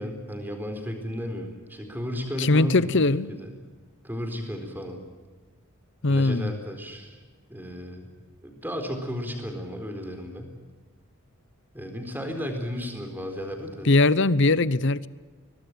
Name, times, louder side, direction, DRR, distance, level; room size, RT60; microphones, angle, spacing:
voice 1, 0.0-3.0 3.3-3.6 4.0-5.0 6.1-7.2 7.5-8.1 8.4-10.5 11.7-13.9, equal, 10° right, 4 dB, 4.1 m, -34 dB
voice 2, 2.4-3.3 6.0-6.5 13.8-15.1, left 2 dB, 55° left, 18 dB, 0.8 m, -20 dB
23.0 x 19.0 x 9.3 m, 1.4 s
head